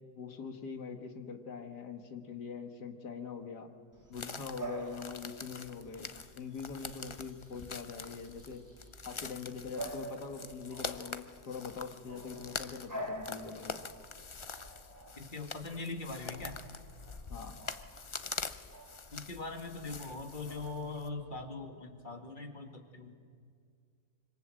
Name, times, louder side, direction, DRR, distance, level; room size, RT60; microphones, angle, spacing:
voice 1, 0.1-3.7 4.1-6.1 6.4-8.6 9.0-13.9 17.3-17.6, left 5 dB, 85° left, 6 dB, 2.3 m, -43 dB
Bark / Bird vocalization bird call bird song, 3.9-21.5, right 1 dB, 10° right, 3.3 m, -49 dB
sound 1, 4.1-21.1, left 4 dB, 50° left, 0.3 m, -45 dB
voice 2, 15.2-16.6 19.1-23.2, left 3 dB, 30° left, 5 dB, 2.3 m, -41 dB
25.5 x 25.0 x 7.8 m, 2.2 s
omnidirectional pair, 1.7 m